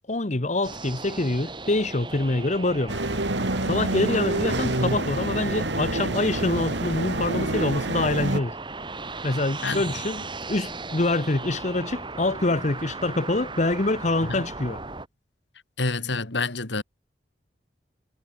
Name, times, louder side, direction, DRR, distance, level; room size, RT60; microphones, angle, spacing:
voice 1, 0.1-2.9 3.6-8.6 9.2-14.8, left 2 dB, 40° left, 1.2 m, -25 dB
sound 1, 0.6-15.1, right 3 dB, 25° right, 4.2 m, -37 dB
sound 2, 2.9-8.4, right 2 dB, 80° right, 3.0 m, -27 dB
voice 2, 15.8-16.8, left 3 dB, 75° left, 2.2 m, -27 dB
head